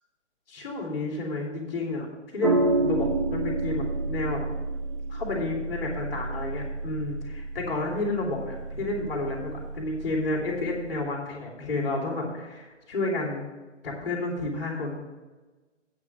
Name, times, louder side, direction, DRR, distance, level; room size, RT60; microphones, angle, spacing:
voice 1, 0.5-2.1 2.3-4.4 5.1-13.4 13.8-15.0, left 2 dB, 50° left, -1 dB, 3.0 m, -31 dB
sound 1, 2.4-11.0, right 2 dB, 25° right, 0.6 m, -30 dB
9.0 x 6.1 x 6.5 m, 1.2 s
figure-of-eight pair, 145°, 37 cm